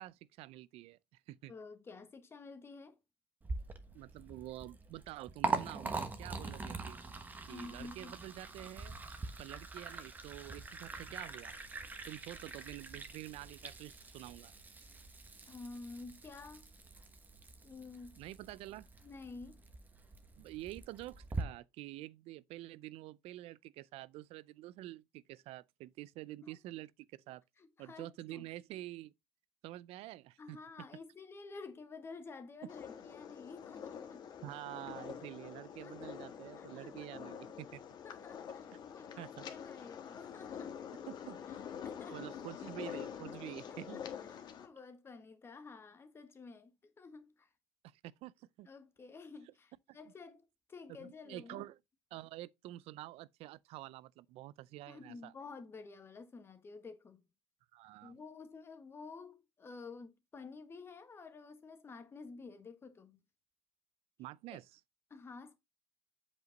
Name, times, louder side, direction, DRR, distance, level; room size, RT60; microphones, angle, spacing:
voice 1, 0.0-1.5 3.9-7.0 7.5-9.0 9.4-11.6 12.1-14.5 15.4-15.5 18.2-18.9 20.4-27.4 27.8-29.1 29.6-30.9 32.6-32.7 34.4-37.8 39.2-39.5 40.9-41.4 42.1-44.0 47.8-48.7 49.9-50.0 51.0-51.8 52.1-55.3 57.7-58.2 64.2-64.8, right 16 dB, 75° right, 0.4 m, -48 dB
voice 2, 1.5-3.0 7.5-8.2 15.5-16.7 17.6-18.2 19.0-19.6 26.4-26.6 27.6-28.5 30.4-34.3 35.7-36.1 36.5-37.1 38.0-40.8 41.8-42.2 43.7-44.1 44.3-47.5 48.6-51.7 54.9-57.2 58.0-63.2 64.5-64.6 65.1-65.6, left 4 dB, 25° left, 1.4 m, -51 dB
Liquid, 3.4-21.4, right 3 dB, 15° right, 1.2 m, -43 dB
sound 1, 32.7-44.7, left 8 dB, 45° left, 1.5 m, -46 dB
8.1 x 5.3 x 3.9 m
cardioid pair, 160°, 10 cm